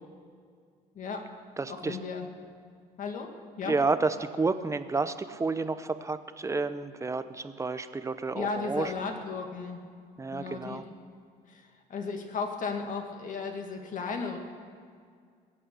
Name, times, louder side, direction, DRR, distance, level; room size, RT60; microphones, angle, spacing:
voice 1, 0.9-1.3 1.7-2.3 3.0-3.3 3.6-3.8 8.3-9.8 10.3-10.8 11.5-14.4, left 5 dB, 50° left, 4 dB, 2.1 m, -35 dB
voice 2, 1.6-2.0 3.7-8.9 10.2-10.8, right 3 dB, 15° right, 11 dB, 0.8 m, -30 dB
21.5 x 8.7 x 6.9 m, 2.1 s
cardioid pair, 110°, 17 cm